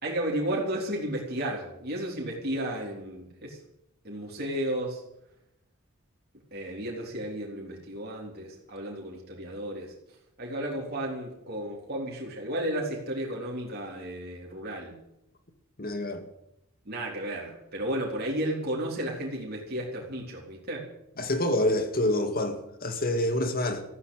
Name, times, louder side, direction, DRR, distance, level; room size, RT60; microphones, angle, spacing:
voice 1, 0.0-3.6 4.0-5.0 6.5-9.9 10.4-15.0 16.9-20.9, right 1 dB, 45° right, 3.7 m, -33 dB
voice 2, 15.8-16.2 21.2-23.8, left 1 dB, 40° left, 2.0 m, -27 dB
14.5 x 9.9 x 8.9 m
head